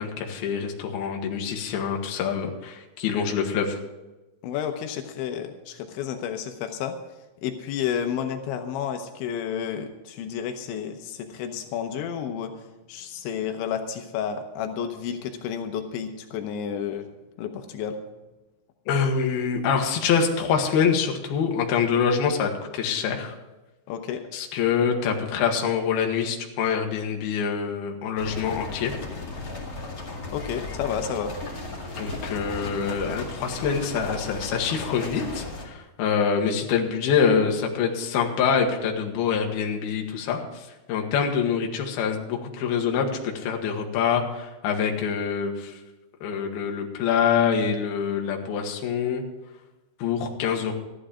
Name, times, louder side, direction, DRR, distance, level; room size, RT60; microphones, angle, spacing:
voice 1, 0.0-3.8 18.9-23.4 24.3-28.9 32.0-45.8 46.2-49.2 50.0-50.7, left 6 dB, 65° left, 2 dB, 3.1 m, -25 dB
voice 2, 4.4-7.0 7.4-12.5 12.9-17.1 17.4-18.0 23.9-24.2 30.3-31.3, left 8 dB, 85° left, 6 dB, 3.3 m, -31 dB
sound 1, 28.2-35.7, left 2 dB, 40° left, 1.2 m, -35 dB
14.0 x 11.5 x 5.0 m, 1.1 s
omnidirectional pair, 5.2 m